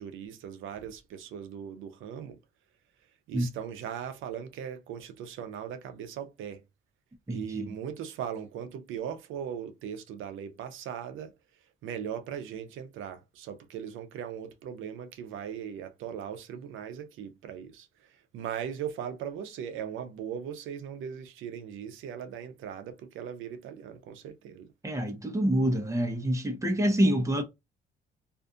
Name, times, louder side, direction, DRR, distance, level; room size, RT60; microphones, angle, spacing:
voice 1, 0.0-2.4 3.3-6.6 7.3-11.3 11.8-24.7, right 8 dB, 80° right, 0.5 m, -39 dB
voice 2, 7.3-7.7 24.8-27.4, right 1 dB, 15° right, 0.8 m, -26 dB
2.5 x 2.4 x 2.3 m
cardioid pair, 90°, 20 cm